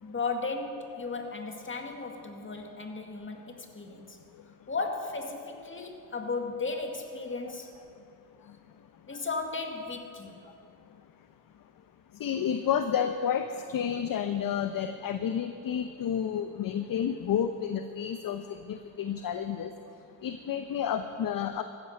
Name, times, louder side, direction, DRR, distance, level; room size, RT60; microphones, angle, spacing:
voice 1, 0.0-4.2 4.7-7.7 9.1-10.4, left 3 dB, 25° left, 3 dB, 2.2 m, -35 dB
voice 2, 12.2-19.7 20.2-21.6, left 8 dB, 40° left, 9 dB, 0.9 m, -30 dB
14.5 x 10.5 x 6.5 m, 2.6 s
hypercardioid pair, 55°, 50 cm